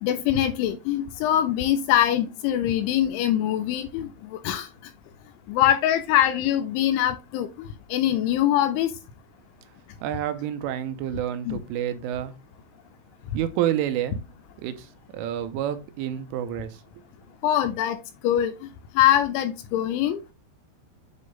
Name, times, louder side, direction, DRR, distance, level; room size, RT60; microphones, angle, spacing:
voice 1, 0.0-4.7 5.5-8.9 11.5-11.6 17.4-18.0 18.2-18.5 19.0-20.2, left 11 dB, 85° left, 2.7 m, -23 dB
voice 2, 10.0-12.4 13.3-14.2 14.6-16.8, right 11 dB, 85° right, 3.2 m, -29 dB
9.4 x 3.2 x 3.9 m
omnidirectional pair, 5.8 m